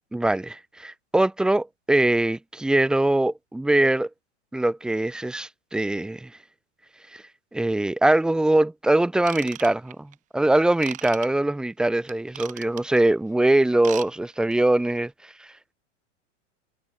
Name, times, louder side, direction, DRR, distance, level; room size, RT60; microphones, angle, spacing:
voice 1, 0.1-4.1 4.5-6.3 7.1-7.2 7.5-15.1, right 1 dB, ahead, 0.6 m, -22 dB
Ratchet pawl / Tools, 9.2-10.1 10.8-11.3 12.1-13.0 13.7-14.1 14.3-14.5 15.0-15.1, right 13 dB, 20° right, 1.0 m, -38 dB
supercardioid pair, 155°, 36 cm